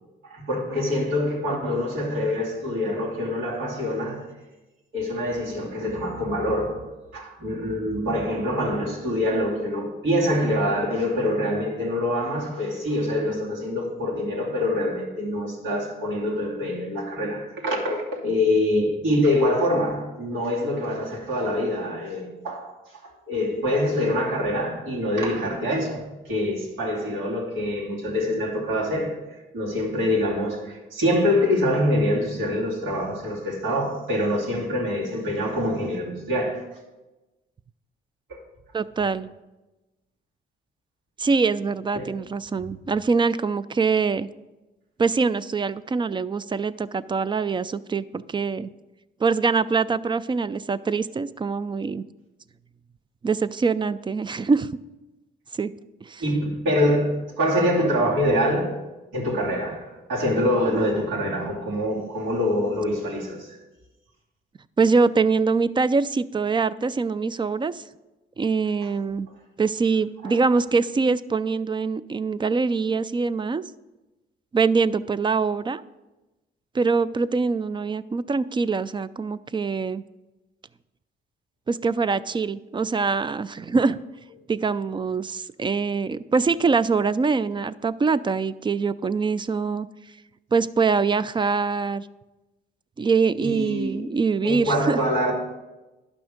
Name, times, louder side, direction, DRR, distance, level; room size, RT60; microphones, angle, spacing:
voice 1, 0.3-4.3 4.9-29.2 29.5-36.6 38.3-38.4 41.9-42.1 56.2-58.8 59.1-63.6 70.2-70.3 93.4-94.0 94.4-95.3, left 1 dB, 80° right, 2.9 m, -25 dB
voice 2, 38.7-39.3 41.2-44.3 45.0-48.7 49.2-52.0 53.2-54.8 55.5-55.7 56.0-56.2 64.8-67.8 68.4-69.3 69.6-73.6 74.5-75.8 76.7-80.0 81.7-84.0 84.5-89.9 90.5-92.1 93.0-95.0, right 4 dB, 25° right, 0.4 m, -24 dB
11.0 x 6.0 x 5.1 m
cardioid pair, 90°, 20 cm